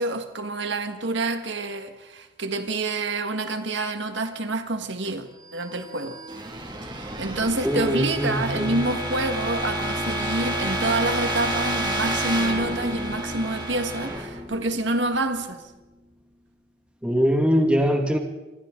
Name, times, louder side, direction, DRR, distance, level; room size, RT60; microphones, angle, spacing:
voice 1, 0.0-6.2 6.8-15.6, right 2 dB, 70° right, 1.6 m, -27 dB
sound 1, 5.6-15.4, right 1 dB, 25° right, 2.3 m, -30 dB
voice 2, 7.6-8.8 17.0-18.2, equal, 5° right, 1.8 m, -22 dB
28.0 x 24.5 x 3.8 m
head